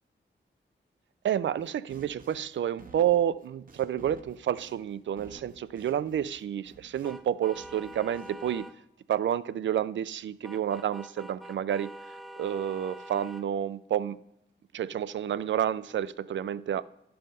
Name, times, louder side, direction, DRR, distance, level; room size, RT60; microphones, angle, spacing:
voice 1, 1.2-8.7 9.1-14.2 14.7-16.8, right 10 dB, 75° right, 0.4 m, -30 dB
sound 1, 1.6-7.3 7.5-8.5, right 4 dB, 45° right, 0.9 m, -53 dB
sound 2, 7.0-8.8 10.4-13.5, right 1 dB, ahead, 0.4 m, -45 dB
11.5 x 5.5 x 5.3 m
wide cardioid pair, 155°, 19 cm